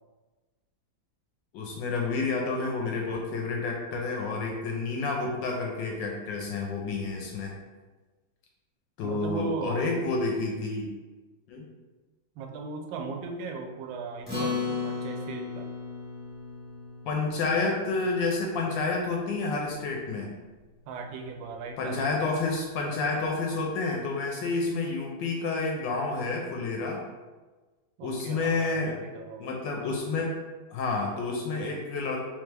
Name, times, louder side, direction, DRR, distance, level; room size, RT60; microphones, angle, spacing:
voice 1, 1.5-7.5 9.0-10.9 11.5-11.7 17.0-20.3 21.8-27.0 28.0-29.0 29.4-30.3 30.7-32.2, left 3 dB, 75° left, 0 dB, 1.2 m, -29 dB
voice 2, 9.0-10.1 12.4-15.7 20.9-22.2 28.0-29.6, right 4 dB, 80° right, 3 dB, 1.3 m, -37 dB
Acoustic guitar, 14.3-19.0, left 4 dB, 5° right, 0.9 m, -35 dB
3.4 x 3.2 x 3.3 m, 1.3 s
omnidirectional pair, 2.1 m